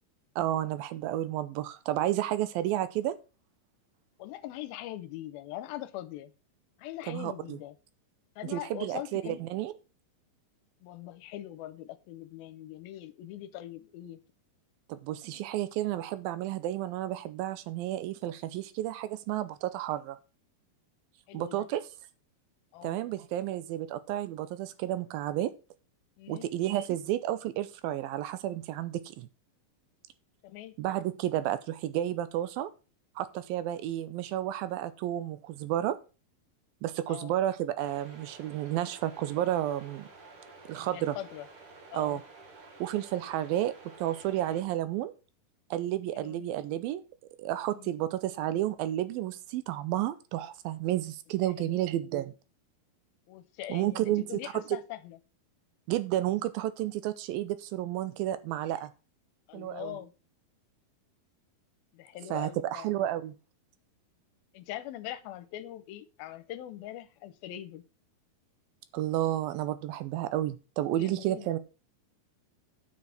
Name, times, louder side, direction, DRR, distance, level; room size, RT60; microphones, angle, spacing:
voice 1, 0.4-3.2 7.1-7.6 8.5-9.7 14.9-20.2 21.3-21.8 22.8-25.5 26.3-29.3 30.8-32.7 33.2-36.0 36.8-40.1 40.7-41.2 41.9-42.2 42.8-45.1 45.7-47.0 47.4-52.3 53.7-54.6 55.9-58.9 59.5-59.9 62.3-63.3 68.9-71.6, right 13 dB, 80° right, 2.4 m, -31 dB
voice 2, 4.2-6.3 6.8-7.8 8.4-9.4 10.8-14.2 21.3-21.7 22.7-23.0 26.2-26.5 30.4-30.8 37.1-37.3 40.7-41.5 41.9-42.2 46.1-46.4 47.7-47.9 51.4-51.9 53.3-55.2 59.5-60.1 61.9-62.9 64.5-67.8 70.9-71.6, left 13 dB, 80° left, 2.4 m, -42 dB
sound 1, 37.8-44.6, right 3 dB, 50° right, 1.9 m, -51 dB
9.1 x 6.2 x 5.8 m
omnidirectional pair, 4.4 m